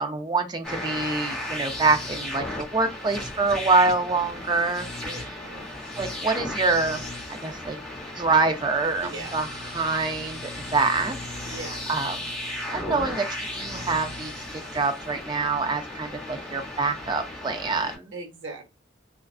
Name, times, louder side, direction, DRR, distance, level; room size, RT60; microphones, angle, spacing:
voice 1, 0.0-4.9 5.1-5.3 6.0-7.0 7.4-7.8 8.2-9.5 9.7-11.2 11.4-11.5 11.9-12.3 12.7-13.2 13.5-18.1, right 3 dB, 20° right, 0.4 m, -25 dB
sound 1, 0.6-18.0, left 1 dB, 5° left, 0.8 m, -35 dB
voice 2, 5.0-5.7 9.1-9.4 11.4-11.9 12.6-13.0 18.1-18.6, right 3 dB, 70° right, 0.8 m, -39 dB
2.4 x 2.3 x 2.3 m
head